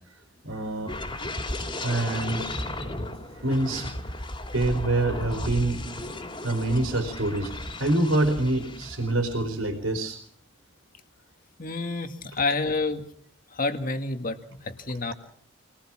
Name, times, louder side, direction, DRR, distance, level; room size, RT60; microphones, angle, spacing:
voice 1, 0.4-1.0 1.8-2.5 3.4-3.9 4.5-5.8 6.4-7.5 7.8-10.2, right 2 dB, 80° right, 3 dB, 4.0 m, -25 dB
sound 1, 0.9-9.4 9.7-10.0, left 1 dB, 25° left, 2.9 m, -35 dB
voice 2, 11.6-13.0 13.6-14.4 14.7-15.1, left 3 dB, 40° left, 6 dB, 2.0 m, -28 dB
26.5 x 19.5 x 6.1 m, 0.64 s
head